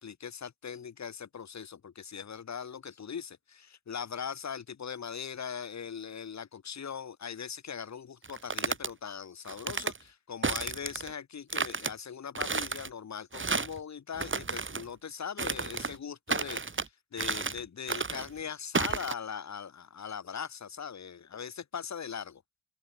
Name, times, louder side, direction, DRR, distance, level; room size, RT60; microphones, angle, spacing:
voice 1, 0.0-22.3, left 7 dB, 65° left, 1.7 m, -40 dB
sound 1, 8.2-8.9 9.5-10.0 10.4-11.1 11.5-11.9 12.4-12.9 13.3-13.8 14.2-14.8 15.4-16.0 16.3-16.9 17.2-17.6 17.9-18.3 18.8-19.1, right 4 dB, 40° right, 2.2 m, -32 dB
cardioid pair, 45°, 29 cm